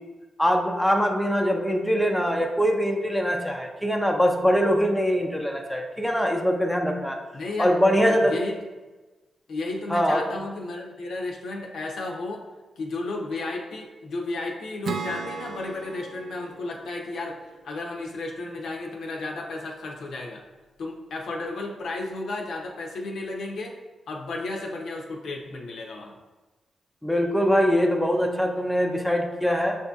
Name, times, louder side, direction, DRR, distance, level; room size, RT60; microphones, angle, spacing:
voice 1, 0.4-7.2 7.6-8.3 9.9-10.2 27.0-29.8, equal, ahead, 2 dB, 0.4 m, -23 dB
voice 2, 7.3-7.7 8.1-8.5 9.5-12.4 12.8-17.4 17.6-20.4 20.8-23.7 24.1-26.2, left 2 dB, 75° left, 0 dB, 0.6 m, -33 dB
Acoustic guitar / Strum, 14.8-18.3, right 5 dB, 70° right, 0.4 m, -37 dB
6.4 x 2.6 x 2.3 m, 1.2 s
cardioid pair, 110°, 0 cm